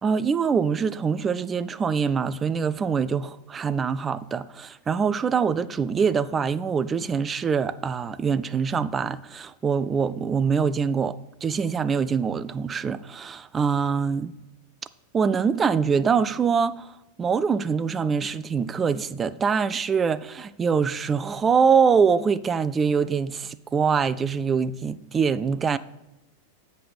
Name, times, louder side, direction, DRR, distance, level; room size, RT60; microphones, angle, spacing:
voice 1, 0.0-14.3 15.1-16.9 17.2-25.8, right 6 dB, 20° right, 0.4 m, -24 dB
7.7 x 5.3 x 6.2 m
figure-of-eight pair, 90°, 0 cm